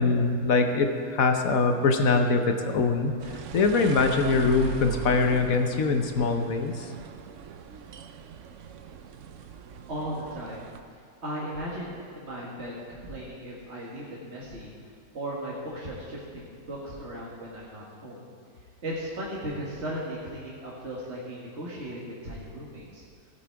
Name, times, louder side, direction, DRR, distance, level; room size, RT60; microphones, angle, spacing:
voice 1, 0.0-6.9, left 4 dB, 55° left, 5 dB, 1.0 m, -23 dB
sound 1, 3.2-10.8, right 6 dB, 90° right, 0.6 m, -40 dB
voice 2, 9.9-10.6 11.2-14.7 15.1-18.3 18.8-23.0, right 1 dB, 35° right, -6 dB, 1.9 m, -36 dB
16.5 x 8.7 x 4.7 m, 2.2 s
omnidirectional pair, 2.1 m